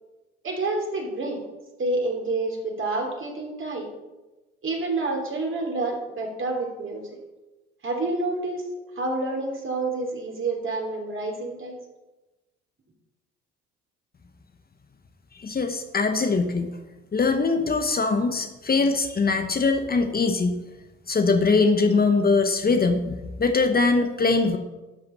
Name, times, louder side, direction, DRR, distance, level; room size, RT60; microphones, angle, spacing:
voice 1, 0.4-1.4 1.8-3.9 4.6-7.2 7.8-8.6 8.9-11.7, right 2 dB, 40° right, 1 dB, 3.2 m, -28 dB
voice 2, 15.3-16.7 17.1-20.5 21.1-24.6, left 4 dB, 30° left, 6 dB, 1.0 m, -22 dB
12.5 x 5.5 x 5.7 m, 1.1 s
hypercardioid pair, 60°, 31 cm